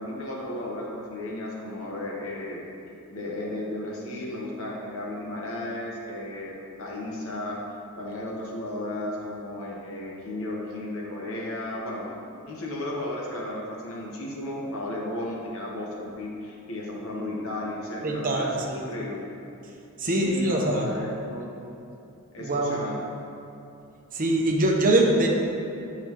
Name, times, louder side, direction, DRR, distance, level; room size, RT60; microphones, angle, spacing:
voice 1, 0.0-2.6 3.1-6.5 6.8-7.6 8.0-12.1 12.5-19.2 20.0-21.6 22.3-23.1, left 1 dB, 70° left, -2 dB, 1.0 m, -34 dB
voice 2, 18.0-18.8 20.0-20.8 22.4-22.8 24.1-25.3, right 1 dB, 40° right, 0 dB, 0.9 m, -23 dB
8.9 x 6.1 x 2.9 m, 2.8 s
head